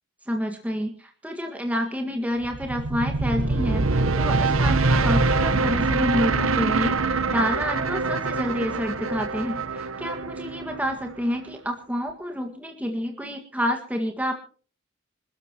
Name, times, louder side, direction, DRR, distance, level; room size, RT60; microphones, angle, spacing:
voice 1, 0.3-14.3, equal, 5° right, 3 dB, 1.8 m, -29 dB
sound 1, 2.4-11.6, right 3 dB, 80° right, 1.1 m, -24 dB
26.5 x 13.5 x 3.0 m, 0.40 s
head